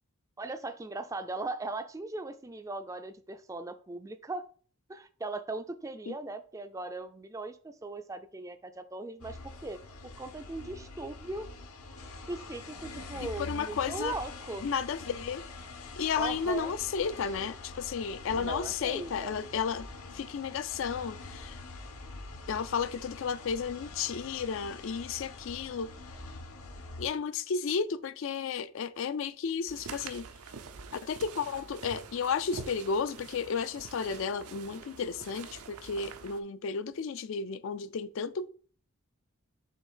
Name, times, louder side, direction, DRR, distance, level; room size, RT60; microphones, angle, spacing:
voice 1, 0.4-4.4 4.9-9.8 10.2-11.5 12.3-14.7 16.2-16.8 18.3-19.4, right 2 dB, 15° right, 0.3 m, -39 dB
sound 1, 9.2-27.1, left 3 dB, 80° left, 1.1 m, -45 dB
voice 2, 13.2-14.1 14.6-15.4 16.0-19.9 20.1-21.6 22.5-25.9 27.0-30.3 31.0-38.5, left 6 dB, 60° left, 0.4 m, -33 dB
sound 2, 29.7-36.4, right 5 dB, 90° right, 0.7 m, -46 dB
6.5 x 3.3 x 5.4 m
head